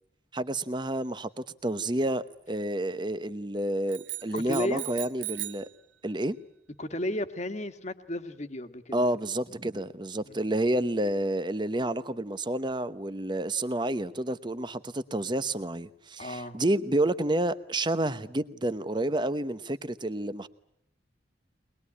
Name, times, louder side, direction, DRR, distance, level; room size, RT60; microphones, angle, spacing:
voice 1, 0.3-5.7 6.0-6.4 8.9-20.5, right 1 dB, 25° right, 0.9 m, -29 dB
sound 1, 3.9-5.7, right 17 dB, 70° right, 1.2 m, -38 dB
voice 2, 4.3-4.8 6.8-9.1 10.2-10.4 16.2-16.6, left 1 dB, 35° left, 1.6 m, -34 dB
23.0 x 21.0 x 9.8 m
head